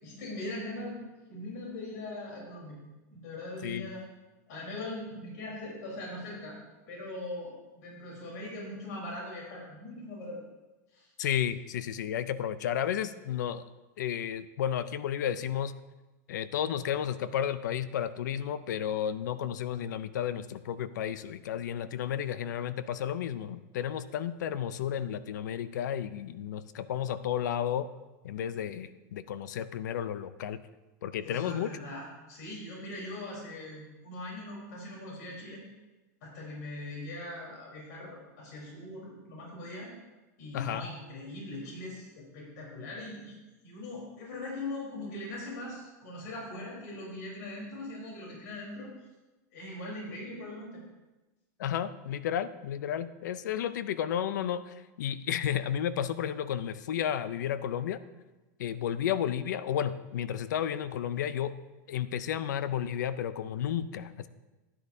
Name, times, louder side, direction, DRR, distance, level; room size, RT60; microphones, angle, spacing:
voice 1, 0.0-1.0 1.3-2.8 3.1-4.0 4.5-6.6 6.9-10.4 10.9-11.1 31.2-35.6 36.2-39.9 40.4-43.4 43.6-48.9 49.5-50.8, left 2 dB, 65° left, -3 dB, 3.9 m, -41 dB
voice 2, 11.2-13.6 14.0-15.8 16.3-27.9 28.2-30.6 31.0-31.7 40.5-40.9 51.6-58.0 58.6-61.6 61.9-64.3, left 9 dB, 85° left, 15 dB, 0.5 m, -32 dB
12.0 x 10.0 x 2.7 m, 1.1 s
supercardioid pair, 150°, 10 cm